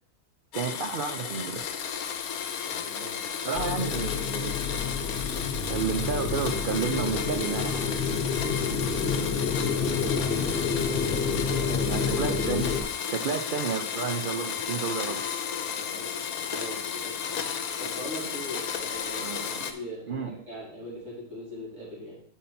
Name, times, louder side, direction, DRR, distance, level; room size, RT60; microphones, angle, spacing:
Domestic sounds home sounds, 0.5-19.7, left 7 dB, 75° left, 1.2 m, -33 dB
voice 1, 0.5-1.6 3.4-4.8 5.7-7.9 11.9-12.8 13.1-15.2 19.2-19.7 20.1-20.4, right 6 dB, 85° right, 5 dB, 0.4 m, -31 dB
voice 2, 2.6-3.5 9.7-10.6 10.9-12.0 15.7-17.5 17.8-19.3 19.6-22.2, equal, 55° right, -7 dB, 3.9 m, -41 dB
sound 1, 3.5-12.8, left 5 dB, 45° left, 1.0 m, -29 dB
6.2 x 5.5 x 5.8 m, 0.63 s
omnidirectional pair, 1.6 m